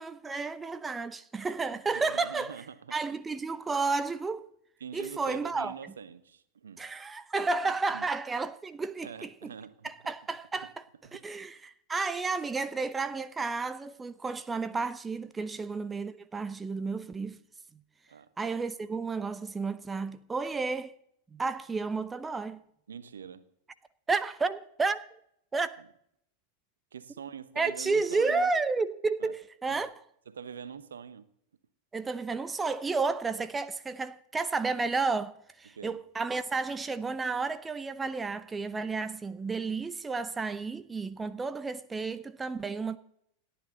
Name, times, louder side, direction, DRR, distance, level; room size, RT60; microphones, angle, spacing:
voice 1, 0.0-2.6 2.9-4.5 4.9-5.7 6.8-9.5 9.8-10.7 11.1-17.4 18.4-20.9 21.3-22.6 24.1-25.0 25.5-25.8 27.6-30.0 31.9-43.0, right 4 dB, 15° right, 0.7 m, -32 dB
voice 2, 1.9-2.9 4.8-6.9 7.6-8.1 9.0-9.9 11.0-11.2 18.1-18.3 22.9-23.4 25.8-25.9 26.9-28.5 29.2-29.3 29.7-29.8 30.3-31.3 35.6-36.0, right 7 dB, 70° right, 1.1 m, -44 dB
28.5 x 10.0 x 4.0 m
figure-of-eight pair, 90°, 0 cm